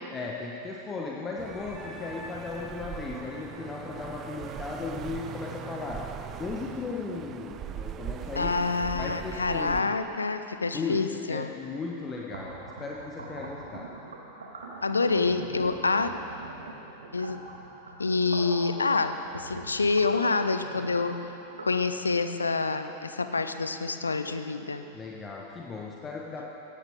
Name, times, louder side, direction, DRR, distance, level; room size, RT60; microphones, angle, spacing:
voice 1, 0.1-6.0 6.4-8.6 8.9-10.0 10.7-11.0 11.3-13.9 24.9-26.5, left 4 dB, 20° left, -2 dB, 1.3 m, -36 dB
Wind instrument woodwind instrument, 1.4-6.8, equal, 10° right, 3.6 m, -49 dB
sound 1, 1.4-9.8, right 9 dB, 30° right, 0.5 m, -40 dB
voice 2, 8.4-11.5 14.8-16.1 17.1-17.4 18.0-21.3 21.6-24.8, left 4 dB, 75° left, 9 dB, 0.7 m, -27 dB
sound 2, 12.2-21.8, right 3 dB, 70° right, 1.9 m, -43 dB
17.0 x 16.0 x 3.7 m, 2.9 s
figure-of-eight pair, 90°, 0 cm